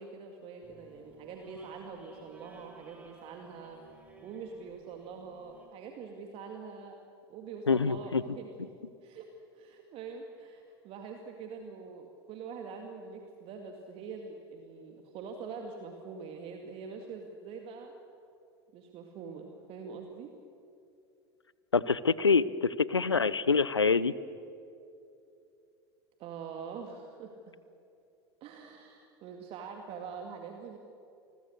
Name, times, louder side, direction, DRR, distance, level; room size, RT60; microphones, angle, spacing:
voice 1, 0.0-3.8 4.2-6.9 7.3-8.7 9.0-9.3 9.5-17.9 18.7-20.3 26.2-27.5 28.4-30.8, right 5 dB, 45° right, 3 dB, 2.3 m, -44 dB
sound 1, 0.6-5.7, right 2 dB, 10° right, 4.9 m, -56 dB
voice 2, 7.7-8.2 21.7-24.1, left 5 dB, 85° left, 19 dB, 0.7 m, -26 dB
29.0 x 21.5 x 6.6 m, 2.6 s
figure-of-eight pair, 80°, 14 cm